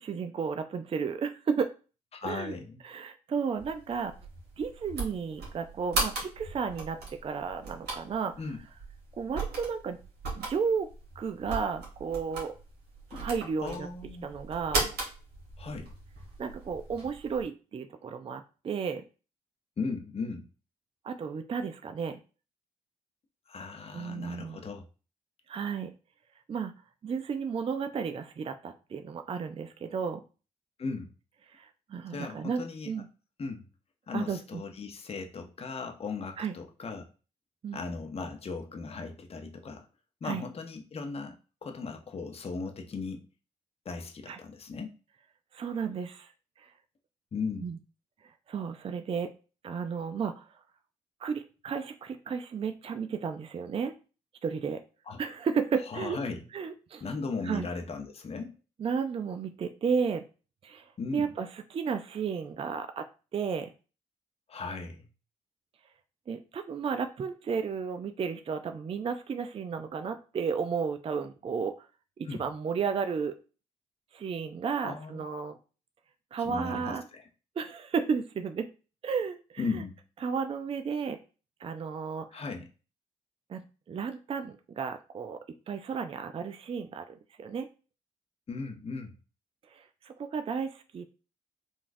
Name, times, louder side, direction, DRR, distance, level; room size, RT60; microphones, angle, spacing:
voice 1, 0.0-1.7 2.2-2.5 2.8-4.1 4.6-8.4 9.2-10.0 10.4-12.6 13.1-13.9 14.2-14.9 16.4-19.1 21.0-22.2 23.9-24.6 25.5-25.9 26.5-26.7 27.0-30.2 31.5-33.1 34.1-34.6 36.4-36.5 37.6-37.8 40.2-40.4 44.3-44.4 45.5-46.3 46.6-46.7 47.6-47.8 48.5-49.3 49.6-50.5 51.2-53.9 54.4-54.8 55.2-56.2 56.5-57.0 57.4-57.7 58.8-60.2 60.6-63.7 66.3-71.9 72.2-73.3 74.1-75.6 76.3-77.1 77.6-78.7 79.0-79.8 80.2-81.2 81.6-82.4 83.5-85.4 85.7-87.7 89.7-91.1, right 6 dB, 35° right, 8 dB, 0.4 m, -33 dB
voice 2, 2.1-2.8 8.4-8.6 13.1-13.3 13.6-14.3 15.6-15.9 19.8-20.4 23.5-24.9 30.8-31.1 32.1-32.9 33.4-33.7 34.1-37.1 37.7-39.8 40.2-41.3 41.6-43.2 43.8-44.9 47.3-47.8 55.1-55.2 55.8-56.4 57.0-58.5 61.0-61.3 64.5-65.1 72.3-72.4 74.8-75.2 76.4-77.2 79.6-80.0 82.3-82.7 88.5-89.1, left 4 dB, 35° left, 4 dB, 0.7 m, -37 dB
sound 1, 3.6-17.4, right 3 dB, 75° right, 1.2 m, -38 dB
3.9 x 2.3 x 2.6 m, 0.34 s
supercardioid pair, 50°, 17 cm